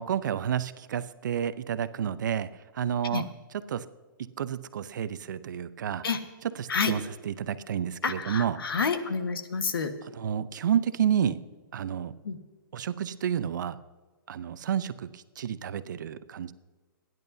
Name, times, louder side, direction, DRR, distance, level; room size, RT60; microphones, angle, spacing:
voice 1, 0.0-3.3 3.7-3.9 4.2-6.0 6.6-7.0 7.3-8.6 10.2-11.4 11.7-12.1 12.7-13.8 14.3-16.5, right 9 dB, 55° right, 13 dB, 0.7 m, -30 dB
voice 2, 8.0-9.9 12.2-12.4, left 5 dB, 85° left, 7 dB, 1.5 m, -29 dB
26.0 x 11.0 x 2.7 m, 1.3 s
hypercardioid pair, 165°, 12 cm